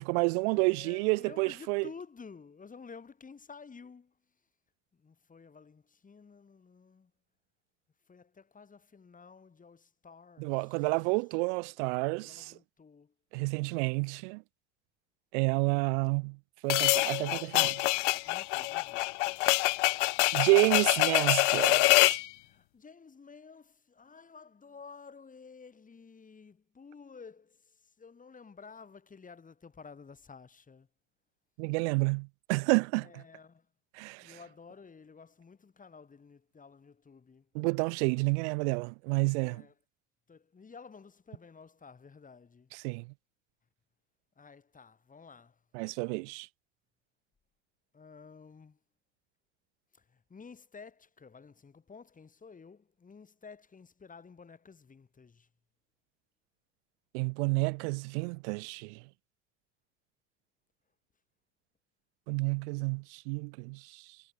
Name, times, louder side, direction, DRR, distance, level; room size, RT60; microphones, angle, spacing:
voice 1, 0.0-1.9 10.4-12.5 13.3-14.4 15.3-16.4 16.6-17.8 20.3-22.2 31.6-33.2 33.9-34.4 37.5-39.6 42.7-43.1 45.7-46.5 57.1-59.0 62.3-64.0, right 31 dB, 70° right, 0.5 m, -30 dB
voice 2, 0.5-4.1 4.9-7.1 8.1-10.9 12.2-13.1 18.2-19.2 22.4-30.9 33.0-33.7 34.2-37.5 39.4-39.7 40.3-42.7 44.4-45.6 47.9-48.8 49.9-55.5, left 5 dB, 20° left, 3.0 m, -52 dB
sound 1, 16.7-22.2, left 24 dB, 75° left, 0.8 m, -26 dB
hypercardioid pair, 85°, 36 cm